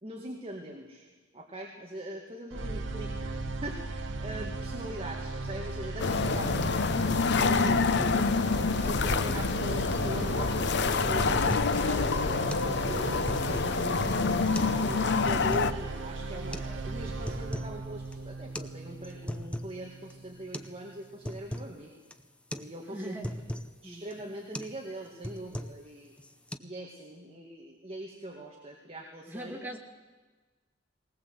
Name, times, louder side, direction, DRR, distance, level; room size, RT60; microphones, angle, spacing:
voice 1, 0.0-1.1 1.3-6.6 7.4-7.8 8.1-8.3 8.6-14.3 14.8-22.0 22.5-23.1 23.5-26.1 26.6-29.7, right 1 dB, 30° right, 0 dB, 2.0 m, -42 dB
sound 1, 2.5-20.5, right 2 dB, 65° right, 1.1 m, -37 dB
sound 2, 6.0-15.7, left 4 dB, 60° left, 0.8 m, -27 dB
voice 2, 7.5-8.3 22.9-23.4 23.8-24.0 29.3-29.8, equal, 10° right, 1 dB, 2.4 m, -39 dB
sound 3, 11.2-11.8 12.1-12.2 12.5-12.7 13.1-13.8 14.4-14.8 15.1-15.7 16.5-16.7 17.1-17.8 18.1-18.2 18.6-18.7 19.0-19.8 20.1-20.2 20.5-20.8 21.0-21.7 22.1-22.3 22.5-22.7 23.0-23.7 24.1-24.3 24.5-24.8 25.1-25.9 26.2-26.6, equal, 5° left, 0.7 m, -39 dB
19.5 x 19.0 x 8.0 m, 1.3 s
head